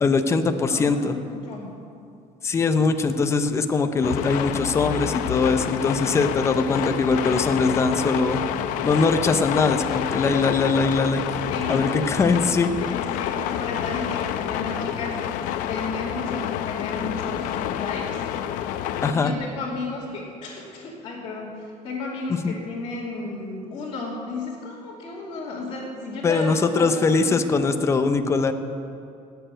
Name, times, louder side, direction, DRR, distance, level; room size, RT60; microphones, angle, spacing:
voice 1, 0.0-1.2 2.4-8.4 8.8-11.2 11.7-12.7 19.0-19.3 22.4-22.5 26.2-28.5, left 4 dB, 20° left, 7 dB, 0.7 m, -21 dB
voice 2, 0.7-1.7 11.5-15.2 15.7-18.2 19.1-27.6, left 3 dB, 40° left, -7 dB, 2.6 m, -34 dB
sound 1, 4.0-19.1, left 10 dB, 90° left, 0.7 m, -28 dB
18.0 x 6.8 x 9.0 m, 2.5 s
cardioid pair, 155°, 13 cm